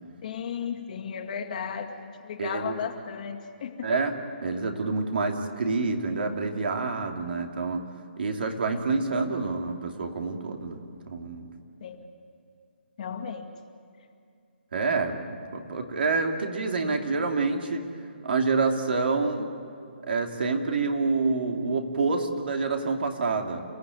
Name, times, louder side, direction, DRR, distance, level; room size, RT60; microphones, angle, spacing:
voice 1, 0.2-3.9 11.8-12.0 13.0-13.5, left 7 dB, 45° left, 3 dB, 2.2 m, -35 dB
voice 2, 2.4-2.8 3.8-4.2 4.4-7.8 8.2-10.8 11.1-11.5 14.7-17.8 18.2-19.5 20.1-23.6, right 4 dB, 65° right, 3 dB, 2.9 m, -27 dB
29.5 x 16.0 x 9.6 m, 2.3 s
hypercardioid pair, 155°, 6 cm